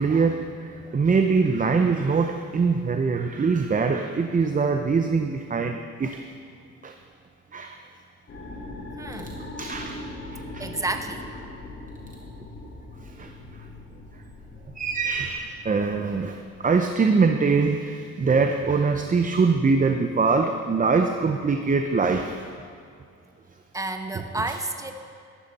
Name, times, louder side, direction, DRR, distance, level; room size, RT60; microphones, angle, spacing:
voice 1, 0.0-6.2 6.8-6.9 7.5-7.8 9.6-10.0 10.5-10.6 13.2-13.3 14.8-22.4, right 4 dB, 25° right, 5 dB, 0.7 m, -23 dB
sound 1, 8.3-16.5, left 2 dB, 50° left, 3.2 m, -40 dB
voice 2, 9.0-9.4 10.6-11.3 23.7-24.9, right 2 dB, 10° right, 6 dB, 1.0 m, -30 dB
14.0 x 12.0 x 4.2 m, 2.4 s
cardioid pair, 90°, 30 cm